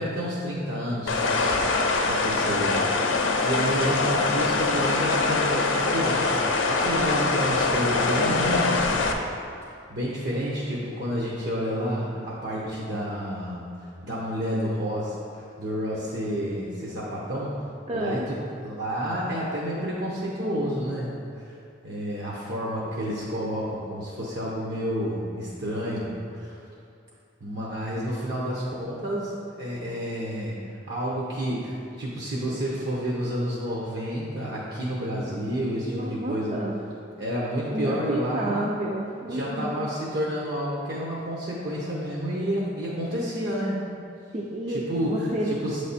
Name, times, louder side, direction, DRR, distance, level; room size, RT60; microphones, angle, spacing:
voice 1, 0.0-9.0 9.6-13.7 14.0-15.2 15.6-17.6 17.9-18.4 18.6-21.2 21.8-26.6 27.4-30.6 30.9-36.6 37.2-38.7 39.3-43.8 44.7-45.3 45.6-45.8, equal, 60° right, -6 dB, 0.8 m, -30 dB
sound 1, 1.1-9.1, left 3 dB, 85° left, 0.5 m, -23 dB
voice 2, 17.9-18.3 35.9-36.8 37.7-39.8 44.3-45.6, right 1 dB, 35° right, -2 dB, 0.4 m, -30 dB
7.8 x 3.3 x 4.1 m, 2.4 s
head